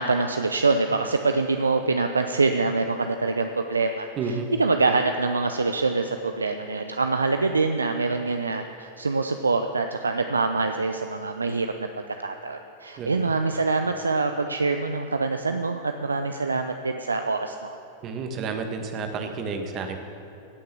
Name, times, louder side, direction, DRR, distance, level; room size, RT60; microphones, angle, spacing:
voice 1, 0.0-17.7, right 3 dB, 75° right, 7 dB, 0.6 m, -25 dB
voice 2, 4.2-4.5 13.0-13.3 18.0-20.0, right 4 dB, 35° right, 5 dB, 1.7 m, -31 dB
17.0 x 6.6 x 8.4 m, 2.8 s
figure-of-eight pair, 90°, 0 cm